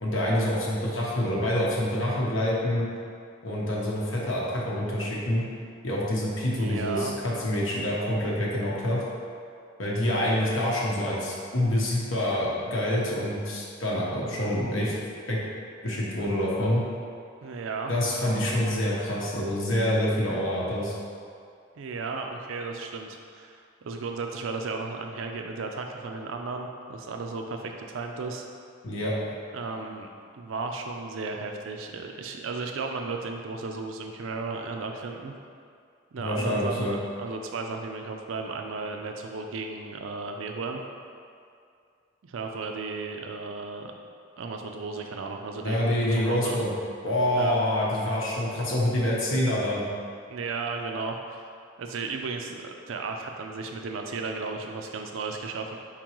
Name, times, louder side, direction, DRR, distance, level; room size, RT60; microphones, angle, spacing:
voice 1, 0.0-2.9 3.4-5.4 5.8-9.0 9.8-14.9 15.3-15.4 15.8-16.8 17.9-20.9 28.8-29.1 36.2-36.9 45.6-46.7 47.0-49.9, left 1 dB, 75° left, -5 dB, 1.0 m, -26 dB
voice 2, 6.5-7.1 17.4-17.9 21.7-28.4 29.5-30.1 30.3-35.3 36.1-40.8 42.2-43.9 44.4-45.8 46.2-46.6 47.4-47.6 50.3-51.4 51.8-55.8, right 4 dB, 75° right, 3 dB, 0.4 m, -34 dB
4.5 x 3.7 x 3.0 m, 2.4 s
head